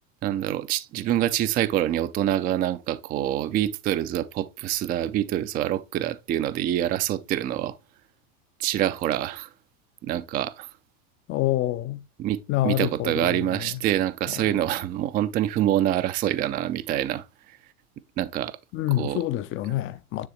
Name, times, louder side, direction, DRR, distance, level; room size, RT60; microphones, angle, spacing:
voice 1, 0.2-7.8 8.6-9.5 10.0-10.7 12.2-17.2 18.2-18.6 19.0-19.2, right 12 dB, 20° right, 0.4 m, -26 dB
voice 2, 11.3-12.0 12.5-13.4 18.7-20.3, left 14 dB, 30° left, 0.5 m, -26 dB
9.8 x 3.4 x 3.2 m
hypercardioid pair, 95°, 43 cm